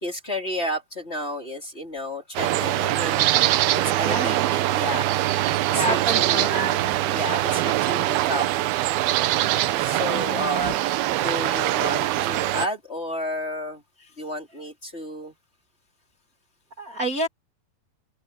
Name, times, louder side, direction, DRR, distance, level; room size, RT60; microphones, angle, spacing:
voice 1, 0.0-3.3 3.7-5.3 5.7-8.5 9.8-10.8 11.2-13.8 14.2-15.3, equal, 20° left, 3.1 m, -32 dB
sound 1, 2.4-12.7, right 15 dB, 85° right, 2.8 m, -23 dB
voice 2, 4.0-4.4 5.7-7.0 9.9-10.7 16.8-17.3, right 2 dB, 30° right, 1.7 m, -29 dB
open air
omnidirectional pair, 4.3 m